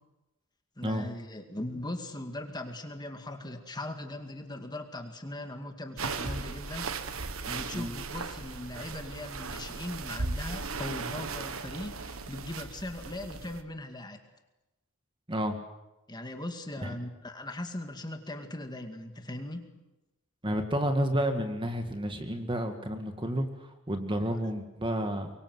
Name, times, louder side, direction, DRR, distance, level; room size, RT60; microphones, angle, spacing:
voice 1, 0.8-7.0 7.4-14.2 16.1-19.7 24.1-24.2, left 1 dB, 20° left, 5 dB, 2.2 m, -39 dB
sound 1, 6.0-13.6, right 4 dB, 75° right, 1.4 m, -37 dB
voice 2, 20.4-25.3, equal, 25° right, 6 dB, 2.0 m, -30 dB
24.0 x 23.5 x 8.0 m, 1.0 s
head